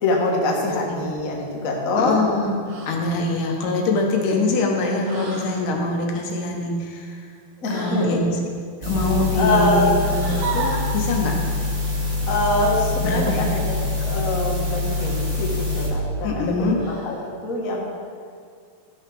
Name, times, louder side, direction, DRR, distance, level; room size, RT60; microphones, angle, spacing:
voice 1, 0.0-2.2 7.6-8.2 9.3-10.0 12.3-17.8, left 2 dB, 55° left, -1 dB, 0.9 m, -24 dB
voice 2, 0.6-1.0 1.9-2.6 2.9-7.1 7.7-8.4 8.8-11.4 13.0-13.5 16.2-16.8, left 2 dB, 70° left, 1 dB, 2.6 m, -24 dB
sound 1, 2.7-3.1 5.0-5.6 7.7-8.2 10.0-10.9 12.6-12.8 14.9-15.4 16.8-17.3, right 4 dB, 55° right, 1.8 m, -33 dB
sound 2, 8.8-15.9, left 2 dB, 20° right, 1.2 m, -25 dB
12.5 x 6.4 x 6.2 m, 2.1 s
omnidirectional pair, 4.0 m